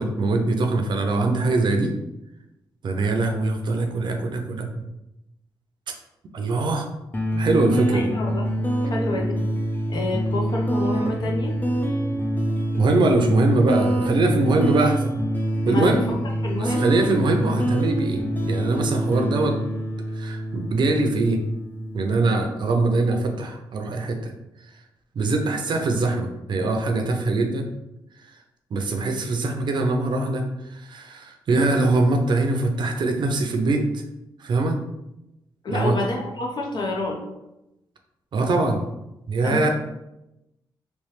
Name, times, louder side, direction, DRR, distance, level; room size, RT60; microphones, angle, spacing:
voice 1, 0.0-1.9 2.8-4.8 6.3-6.9 7.4-8.1 12.8-15.2 15.7-16.1 16.6-19.6 20.2-21.4 21.9-24.3 25.2-27.7 28.7-33.9 34.4-34.8 35.7-36.0 38.3-38.8 39.3-39.7, right 2 dB, 60° right, 4 dB, 0.6 m, -22 dB
sound 1, 7.1-22.2, equal, 20° left, 0.6 m, -26 dB
voice 2, 7.9-8.5 8.8-9.4 9.9-11.5 15.7-16.0 16.4-16.9 35.6-37.2 39.4-39.7, left 2 dB, 55° left, 0 dB, 0.8 m, -28 dB
3.2 x 3.2 x 3.2 m, 0.91 s
cardioid pair, 90°, 9 cm